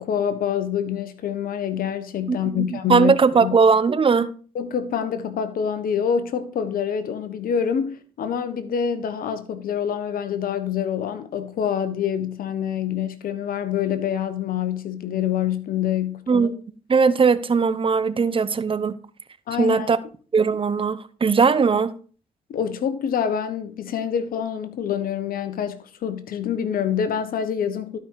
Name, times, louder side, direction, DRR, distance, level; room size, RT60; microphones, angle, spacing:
voice 1, 0.0-3.1 3.4-3.6 4.5-16.5 19.5-19.9 22.5-28.0, left 8 dB, 65° left, 1.2 m, -26 dB
voice 2, 2.3-4.3 16.3-16.5 16.9-19.0 19.6-20.0 20.3-21.9, right 5 dB, 35° right, 0.9 m, -19 dB
12.0 x 5.3 x 4.7 m
supercardioid pair, 50°, 16 cm